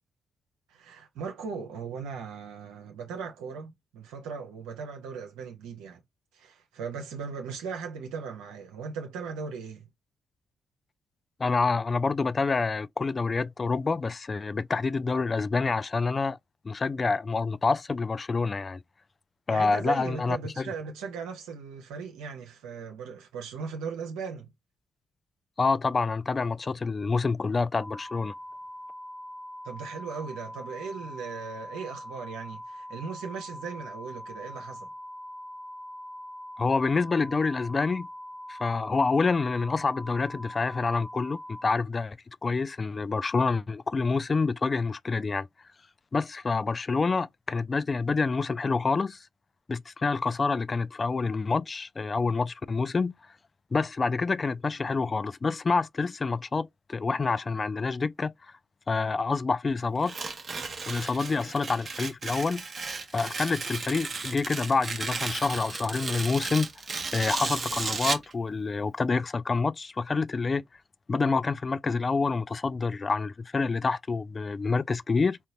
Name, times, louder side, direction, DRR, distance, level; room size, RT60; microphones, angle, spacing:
voice 1, 0.7-6.0 6.3-9.9 19.5-24.5 29.6-34.9, right 5 dB, 75° right, 0.5 m, -38 dB
voice 2, 11.4-16.4 16.6-18.8 19.5-20.7 25.6-28.3 36.6-38.1 38.5-45.5 46.1-49.3 49.7-53.1 53.7-58.3 58.9-60.1 60.9-62.6 63.1-66.7 67.1-70.6 71.1-75.4, left 4 dB, 40° left, 0.3 m, -27 dB
sound 1, 27.7-41.6, left 1 dB, 60° left, 1.0 m, -42 dB
Tearing, 60.0-68.3, right 4 dB, 45° right, 0.7 m, -34 dB
3.8 x 2.2 x 2.6 m
hypercardioid pair, 40°, 0 cm